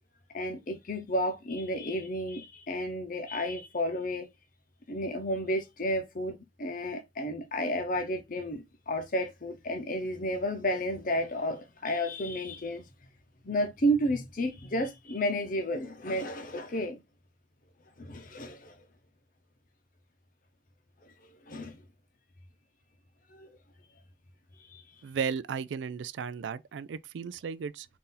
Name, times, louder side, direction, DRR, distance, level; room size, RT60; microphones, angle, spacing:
voice 1, 0.3-4.3 4.9-12.8 13.4-17.0 18.0-18.8 21.0-21.8 23.3-23.5 24.7-24.8, equal, 50° left, 0.8 m, -32 dB
voice 2, 25.0-27.9, right 6 dB, 90° right, 0.4 m, -35 dB
4.2 x 2.7 x 3.7 m
head